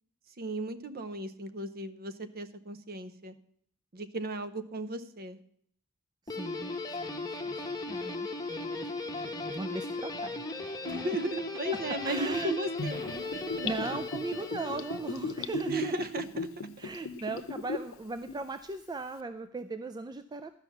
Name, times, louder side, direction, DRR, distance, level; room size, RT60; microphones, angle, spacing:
voice 1, 0.4-3.3 3.9-5.4 10.8-13.8 15.7-16.5, right 1 dB, 45° right, 12 dB, 0.7 m, -35 dB
Guitar, 6.3-15.6, left 3 dB, 15° left, 1.0 m, -37 dB
voice 2, 6.3-10.4 12.0-12.5 13.6-16.1 16.8-20.6, right 3 dB, 20° right, 10 dB, 0.4 m, -38 dB
Gurgling / Bathtub (filling or washing), 12.8-17.9 18.3-18.4, left 4 dB, 65° left, 0.8 m, -36 dB
12.0 x 5.7 x 7.1 m, 0.66 s
head